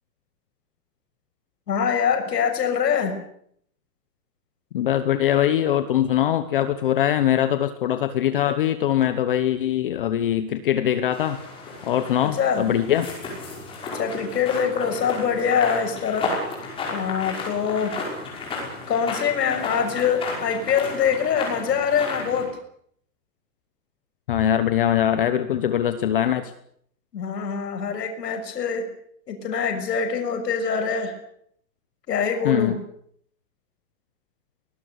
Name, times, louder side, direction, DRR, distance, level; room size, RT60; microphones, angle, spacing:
voice 1, 1.7-3.2 12.3-12.6 13.9-16.3 16.9-18.0 18.9-22.5 27.1-28.9 29.3-31.1 32.1-32.7, left 7 dB, 80° left, 5 dB, 6.6 m, -24 dB
voice 2, 4.7-11.4 11.8-13.1 24.3-26.5 32.4-32.8, left 11 dB, 35° left, 11 dB, 1.0 m, -22 dB
sound 1, 11.1-22.4, left 3 dB, 10° left, 5.5 m, -33 dB
23.0 x 19.5 x 8.2 m, 0.67 s
hypercardioid pair, 180°, 49 cm